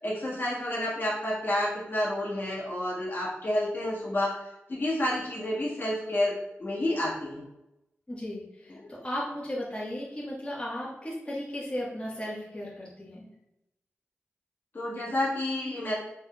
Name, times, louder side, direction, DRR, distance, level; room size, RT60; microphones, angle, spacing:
voice 1, 0.0-4.3 4.7-7.4 14.7-15.9, left 1 dB, 50° left, -6 dB, 1.3 m, -29 dB
voice 2, 8.1-13.3, left 1 dB, 25° left, -6 dB, 1.3 m, -36 dB
4.2 x 3.4 x 2.3 m, 0.89 s
cardioid pair, 50°, 5 cm